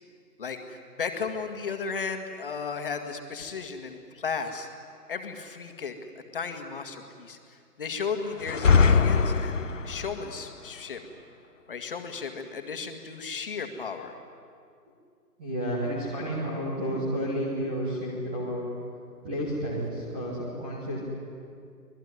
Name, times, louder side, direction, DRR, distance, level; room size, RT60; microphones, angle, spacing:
voice 1, 0.4-4.7 5.1-11.0 11.7-14.2, left 5 dB, 35° left, 6 dB, 2.0 m, -35 dB
sound 1, 8.4-10.1, left 5 dB, 50° left, 1.1 m, -21 dB
voice 2, 15.4-18.7 19.2-21.0, equal, 5° right, -6 dB, 1.1 m, -31 dB
25.5 x 20.0 x 9.6 m, 2.3 s
figure-of-eight pair, 160°, 49 cm